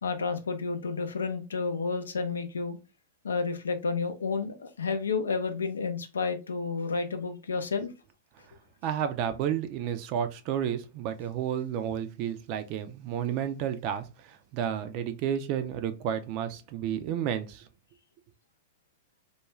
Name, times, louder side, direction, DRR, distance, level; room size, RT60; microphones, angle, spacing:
voice 1, 0.0-2.8 3.2-7.9, left 4 dB, 85° left, 0.5 m, -31 dB
voice 2, 8.8-17.7, right 9 dB, 45° right, 0.4 m, -31 dB
2.4 x 2.2 x 3.0 m
hypercardioid pair, 110°, 0 cm